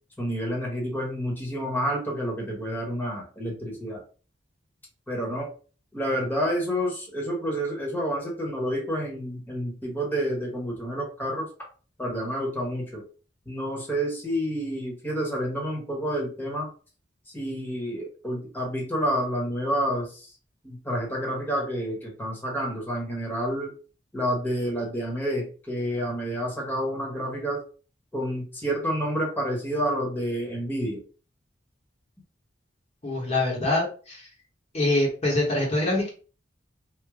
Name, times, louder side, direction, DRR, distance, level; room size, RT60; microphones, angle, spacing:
voice 1, 0.2-4.0 5.1-5.5 5.9-11.5 12.0-13.0 13.5-16.7 17.3-20.3 20.6-23.7 24.1-27.6 28.1-31.0, equal, 10° left, -2 dB, 1.1 m, -29 dB
voice 2, 33.0-34.3 34.7-36.1, left 2 dB, 35° left, -3 dB, 1.0 m, -24 dB
3.1 x 2.2 x 3.5 m, 0.38 s
head